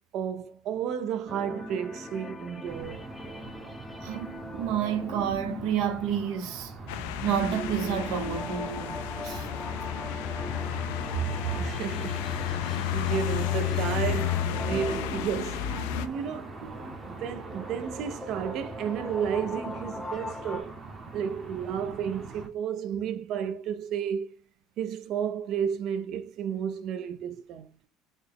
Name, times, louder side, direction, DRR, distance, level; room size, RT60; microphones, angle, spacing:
voice 1, 0.1-3.0 11.1-15.7 16.0-16.6 17.1-20.8 21.1-24.4 24.8-27.7, right 8 dB, 55° right, 0.5 m, -32 dB
sound 1, 1.3-20.6, left 1 dB, 10° left, 0.5 m, -41 dB
sound 2, 2.6-22.5, right 3 dB, 20° right, 0.9 m, -43 dB
voice 2, 4.0-6.7 7.2-9.0 9.2-9.5 16.6-16.7, right 9 dB, 70° right, 0.9 m, -30 dB
sound 3, 6.9-16.1, left 12 dB, 85° left, 0.4 m, -32 dB
4.0 x 2.2 x 3.4 m
cardioid pair, 130°, 0 cm